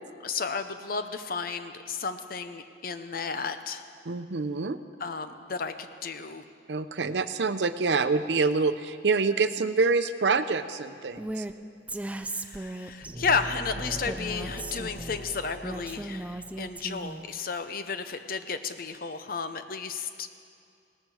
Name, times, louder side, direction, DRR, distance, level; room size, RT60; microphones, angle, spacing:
voice 1, 0.2-3.9 5.0-6.4 12.3-20.3, left 5 dB, 55° left, 9 dB, 0.7 m, -33 dB
voice 2, 4.1-4.8 6.7-11.4, right 4 dB, 80° right, 11 dB, 0.6 m, -26 dB
Female speech woman speaking, 11.2-11.5 11.9-13.1 14.0-15.2 15.6-17.3, right 1 dB, 10° right, 0.4 m, -36 dB
sound 1, 13.0-16.7, right 1 dB, 45° right, 1.6 m, -41 dB
18.0 x 13.0 x 4.9 m, 2.4 s
head